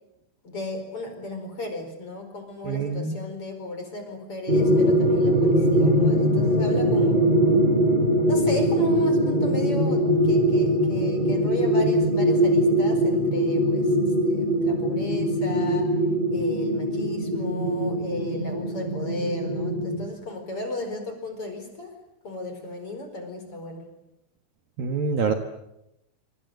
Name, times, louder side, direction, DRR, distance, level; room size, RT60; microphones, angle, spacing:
voice 1, 0.4-7.2 8.3-15.9 16.3-21.9 22.2-23.9, left 2 dB, 30° left, 6 dB, 5.2 m, -35 dB
voice 2, 2.6-3.2 24.8-25.3, right 5 dB, 60° right, 6 dB, 2.7 m, -26 dB
sound 1, 4.5-20.1, equal, 10° right, 6.6 m, -22 dB
26.5 x 26.5 x 8.0 m, 0.87 s
omnidirectional pair, 5.6 m